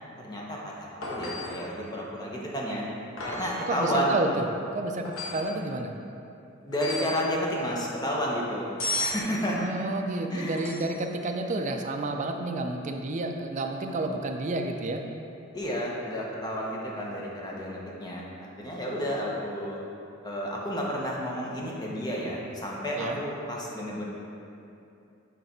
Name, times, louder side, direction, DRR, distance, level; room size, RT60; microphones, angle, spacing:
voice 1, 0.2-2.8 3.2-4.2 6.6-8.7 9.0-9.6 10.3-10.7 15.5-18.3 18.6-19.8 20.2-24.0, equal, 20° left, -3 dB, 0.8 m, -31 dB
sound 1, 1.0-1.7 3.2-3.6 5.0-5.5 6.7-7.2 8.8-9.3 10.6-11.1 13.8-14.0, left 2 dB, 80° left, 1.2 m, -33 dB
voice 2, 3.7-4.5 4.7-5.0 5.3-5.9 9.5-15.1 22.9-23.2, right 2 dB, 35° right, 4 dB, 0.4 m, -30 dB
8.0 x 3.3 x 4.3 m, 2.7 s
head